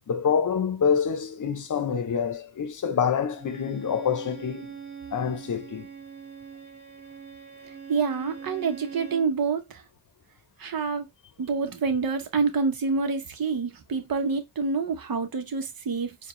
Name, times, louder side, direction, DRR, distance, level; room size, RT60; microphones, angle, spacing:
voice 1, 0.1-4.8 5.1-5.9, left 7 dB, 45° left, 0.8 m, -26 dB
Bowed string instrument, 3.3-9.4, right 6 dB, 25° right, 1.5 m, -42 dB
voice 2, 7.9-9.8 10.6-11.1 11.4-16.1, right 4 dB, 55° right, 1.0 m, -27 dB
4.5 x 2.4 x 3.1 m
cardioid pair, 75°, 42 cm